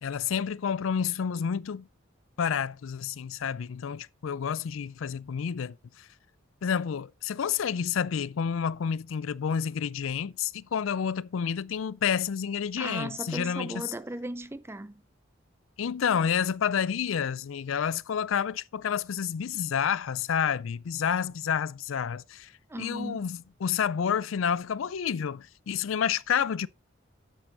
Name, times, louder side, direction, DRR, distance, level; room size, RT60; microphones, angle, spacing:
voice 1, 0.0-1.9 2.4-6.1 6.6-13.8 15.8-22.5 22.8-26.7, left 7 dB, 80° left, 0.4 m, -29 dB
voice 2, 12.8-15.0 22.7-23.3, right 1 dB, 10° right, 0.4 m, -37 dB
9.1 x 8.0 x 3.9 m
head